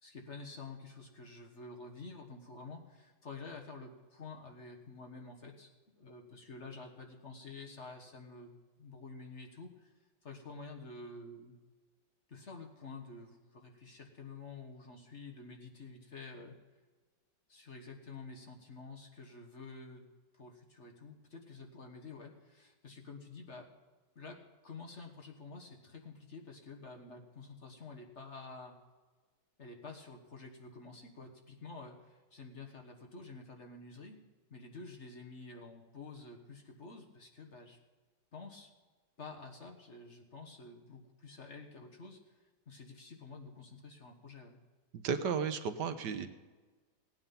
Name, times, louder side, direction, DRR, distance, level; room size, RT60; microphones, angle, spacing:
voice 1, 0.0-5.7 6.0-9.9 10.2-11.5 12.3-16.5 17.5-20.1 20.3-23.7 24.1-28.7 29.6-34.2 34.5-37.8 38.3-38.7 39.2-42.4 42.7-44.6, left 3 dB, 40° left, 2 dB, 1.5 m, -49 dB
voice 2, 44.9-46.3, right 6 dB, 70° right, 9 dB, 1.4 m, -34 dB
17.0 x 9.2 x 5.5 m, 1.3 s
omnidirectional pair, 2.0 m